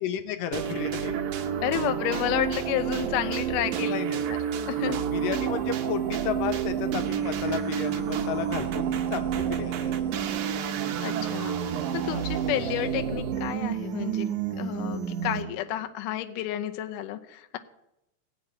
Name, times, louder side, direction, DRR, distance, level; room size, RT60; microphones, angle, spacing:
voice 1, 0.0-1.2 3.8-4.2 4.8-10.5, left 10 dB, 70° left, 8 dB, 2.3 m, -33 dB
sound 1, 0.5-15.6, right 9 dB, 80° right, 1.7 m, -29 dB
voice 2, 1.6-4.0 4.3-4.4 4.7-5.0 11.0-14.3 14.6-17.6, left 12 dB, 85° left, 7 dB, 1.8 m, -31 dB
17.5 x 5.9 x 8.8 m, 0.85 s
omnidirectional pair, 4.7 m